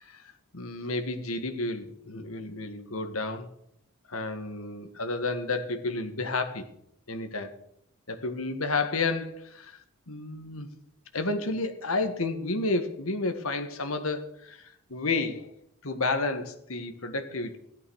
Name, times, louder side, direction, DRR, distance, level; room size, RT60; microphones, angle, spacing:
voice 1, 0.0-3.5 4.1-6.7 7.1-7.6 8.1-9.8 10.1-10.7 11.1-15.5 15.8-17.6, left 3 dB, 80° left, 1.8 m, -31 dB
15.5 x 12.0 x 6.4 m
head